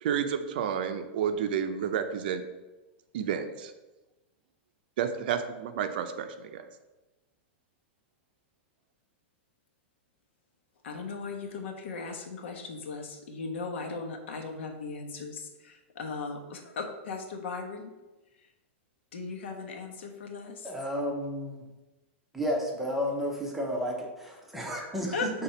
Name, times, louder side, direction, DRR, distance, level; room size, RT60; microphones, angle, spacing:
voice 1, 0.0-2.4 3.1-3.7 5.0-6.6, right 8 dB, 50° right, 8 dB, 0.6 m, -30 dB
voice 2, 10.8-17.9 18.3-18.5 19.1-20.7 25.1-25.3, left 4 dB, 75° left, 3 dB, 1.2 m, -37 dB
voice 3, 20.6-21.6 22.3-25.1, equal, 5° right, -1 dB, 0.7 m, -32 dB
5.8 x 3.7 x 5.5 m, 1.1 s
supercardioid pair, 175°, 6 cm